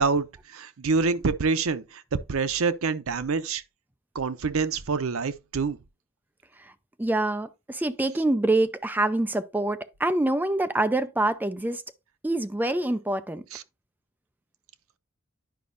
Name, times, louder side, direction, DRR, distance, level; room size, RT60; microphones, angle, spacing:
voice 1, 0.0-3.6 4.1-5.8 13.5-13.6, right 4 dB, 90° right, 0.6 m, -26 dB
voice 2, 7.0-11.8 12.2-13.4, right 2 dB, 10° right, 0.5 m, -25 dB
10.5 x 5.2 x 2.6 m
head